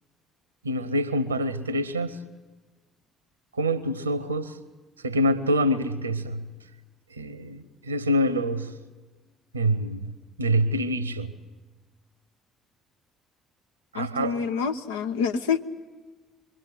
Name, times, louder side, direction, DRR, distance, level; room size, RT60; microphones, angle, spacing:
voice 1, 0.6-2.2 3.5-4.6 5.0-6.5 7.1-8.7 9.5-11.3 13.9-14.3, equal, 80° right, 0.9 m, -26 dB
voice 2, 13.9-15.6, left 6 dB, 70° left, 1.0 m, -27 dB
25.5 x 22.5 x 8.2 m
figure-of-eight pair, 50°, 0 cm